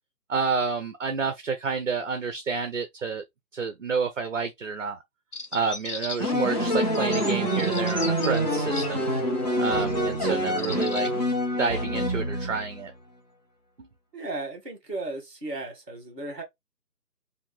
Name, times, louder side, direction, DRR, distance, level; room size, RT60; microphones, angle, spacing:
voice 1, 0.3-3.2 3.5-5.0 5.5-9.1 9.6-11.3 11.6-12.9, right 5 dB, 50° right, 0.7 m, -29 dB
sound 1, 5.3-6.4 6.9-8.9 9.7-10.0 10.5-11.1, left 4 dB, 70° left, 1.3 m, -36 dB
sound 2, 6.2-12.8, equal, 25° left, 1.2 m, -26 dB
voice 2, 14.1-16.4, right 2 dB, 10° right, 1.3 m, -35 dB
5.1 x 2.7 x 3.4 m
figure-of-eight pair, 165°, 48 cm